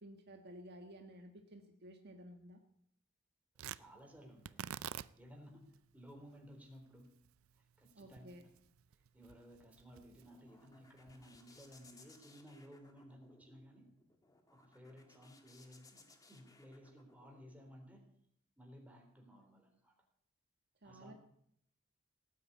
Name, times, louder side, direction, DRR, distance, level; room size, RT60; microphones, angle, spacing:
voice 1, 0.0-2.6 7.9-8.4 20.8-21.1, right 1 dB, 50° right, 4 dB, 1.5 m, -54 dB
Tearing, 3.5-11.9, right 9 dB, 90° right, 0.5 m, -51 dB
voice 2, 3.7-4.8 5.2-7.1 7.6-8.3 9.1-13.9 14.5-18.1 18.6-19.9 20.8-21.1, equal, 5° right, 2 dB, 3.8 m, -57 dB
sound 1, 10.0-17.7, left 3 dB, 15° left, 1.8 m, -65 dB
17.5 x 8.7 x 8.6 m, 0.69 s
head